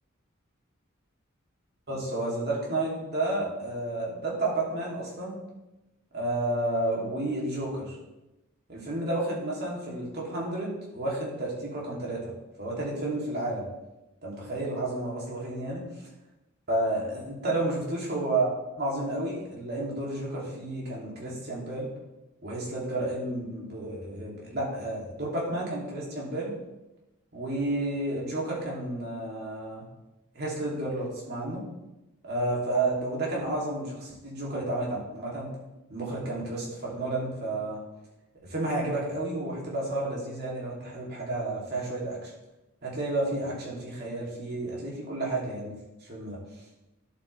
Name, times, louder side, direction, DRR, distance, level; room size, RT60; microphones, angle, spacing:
voice 1, 1.9-5.3 6.1-7.9 8.7-12.3 12.6-13.7 14.2-15.9 16.7-21.9 22.4-26.5 27.3-29.9 30.3-31.6 32.2-35.5 35.9-37.8 38.4-42.3 42.8-45.8 46.0-46.4, right 2 dB, 50° right, -4 dB, 3.0 m, -31 dB
11.0 x 8.2 x 3.4 m, 0.97 s
head